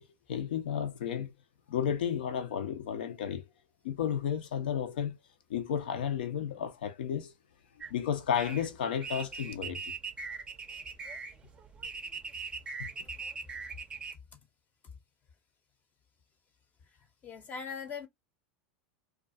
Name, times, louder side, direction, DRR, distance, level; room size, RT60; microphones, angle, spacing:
voice 1, 0.3-1.3 1.7-3.4 3.8-5.2 5.5-7.3 7.9-9.9, left 8 dB, 85° left, 0.6 m, -32 dB
sound 1, 7.8-14.1, right 4 dB, 20° right, 0.5 m, -41 dB
voice 2, 17.2-18.1, left 6 dB, 35° left, 0.6 m, -40 dB
2.4 x 2.2 x 2.5 m
supercardioid pair, 115°, 5 cm